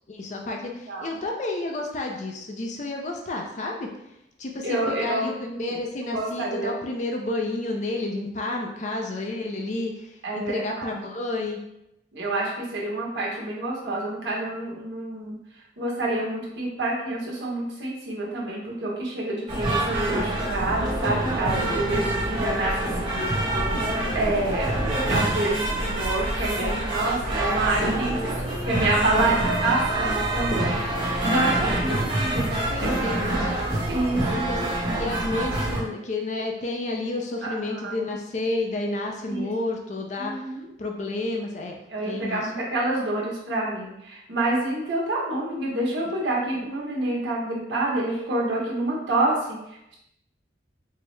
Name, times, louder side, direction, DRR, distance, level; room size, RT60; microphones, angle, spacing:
voice 1, 0.1-3.9 4.4-11.6 25.6-25.9 26.6-26.8 28.0-28.5 28.9-29.3 30.9-33.5 34.3-40.5 40.8-41.8 42.0-42.5, left 2 dB, 40° left, 1 dB, 0.4 m, -31 dB
voice 2, 4.6-5.7 6.1-6.7 10.2-10.9 12.1-15.4 15.8-23.2 24.1-28.2 28.6-32.9 33.9-34.5 37.4-38.0 39.2-39.5 40.2-40.7 41.9-49.6, right 2 dB, 70° right, -4 dB, 1.1 m, -28 dB
sound 1, 19.5-35.8, right 1 dB, 25° right, 1.1 m, -26 dB
4.5 x 2.1 x 3.2 m, 0.85 s
head